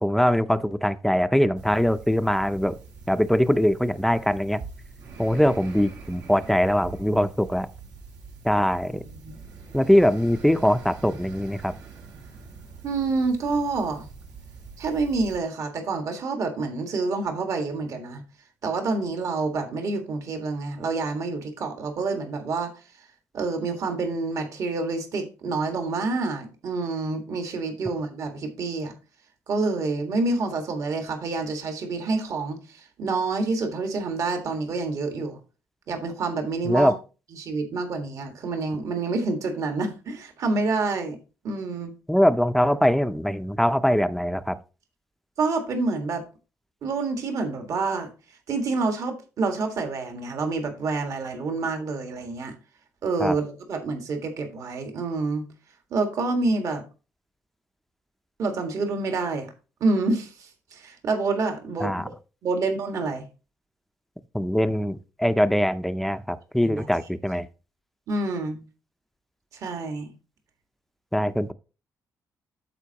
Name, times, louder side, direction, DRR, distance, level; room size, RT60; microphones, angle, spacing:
voice 1, 0.0-2.8 3.1-4.6 5.2-7.7 8.4-9.0 9.7-11.7 36.6-36.9 42.1-44.6 53.2-53.4 61.8-62.1 64.3-67.5 71.1-71.5, equal, 5° left, 0.5 m, -22 dB
sound 1, 1.6-15.4, right 4 dB, 85° right, 2.4 m, -44 dB
voice 2, 12.8-14.1 14.8-18.2 18.6-22.7 23.3-28.9 29.5-35.4 35.9-36.9 37.3-41.2 41.4-41.9 45.4-46.2 46.8-48.1 48.5-52.5 53.0-55.4 55.9-56.8 58.4-59.5 59.8-62.1 62.4-63.2 66.6-66.9 68.1-68.6 69.5-70.1, right 3 dB, 60° right, 1.7 m, -27 dB
13.0 x 4.4 x 2.9 m
cardioid pair, 105°, 6 cm